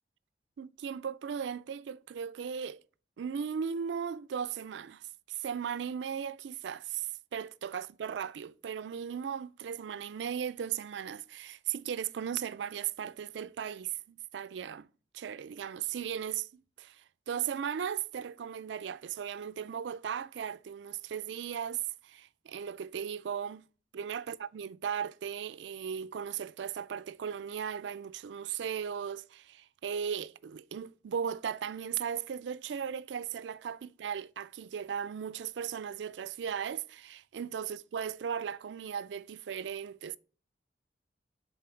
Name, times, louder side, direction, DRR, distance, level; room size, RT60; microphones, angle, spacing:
voice 1, 0.6-2.8 3.2-14.9 15.1-23.6 23.9-40.2, right 8 dB, 85° right, 0.4 m, -37 dB
6.9 x 4.3 x 4.4 m
head